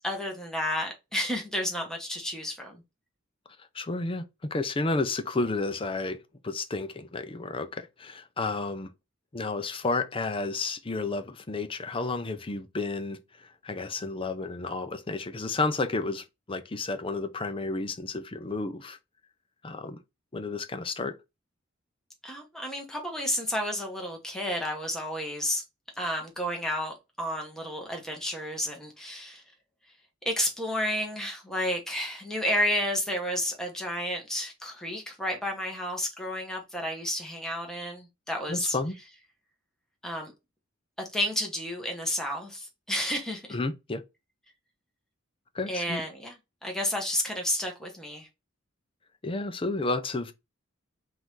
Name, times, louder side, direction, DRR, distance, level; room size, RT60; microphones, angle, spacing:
voice 1, 0.0-2.8 22.2-25.6 26.0-29.4 30.2-38.8 40.0-40.3 41.0-43.5 45.7-46.3 46.6-48.3, left 1 dB, 5° left, 1.1 m, -31 dB
voice 2, 3.7-8.9 9.3-19.0 19.6-20.0 20.3-21.2 38.5-38.9 43.5-44.0 45.5-46.0 49.2-50.3, left 3 dB, 25° left, 0.6 m, -31 dB
3.9 x 2.6 x 4.7 m
head